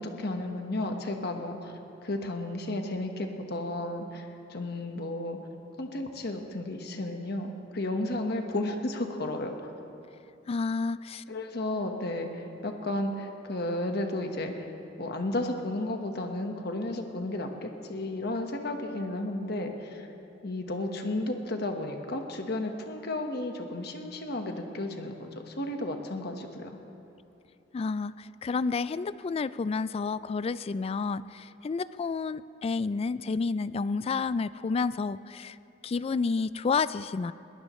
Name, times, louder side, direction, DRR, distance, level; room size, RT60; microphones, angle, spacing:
voice 1, 0.0-5.4 5.8-9.7 11.3-14.7 15.0-20.1 20.4-26.8, left 1 dB, 60° left, 4 dB, 1.3 m, -33 dB
voice 2, 10.5-11.2 27.7-35.6 35.8-37.3, left 4 dB, 30° left, 16 dB, 0.3 m, -30 dB
22.0 x 18.0 x 3.2 m, 2.8 s
head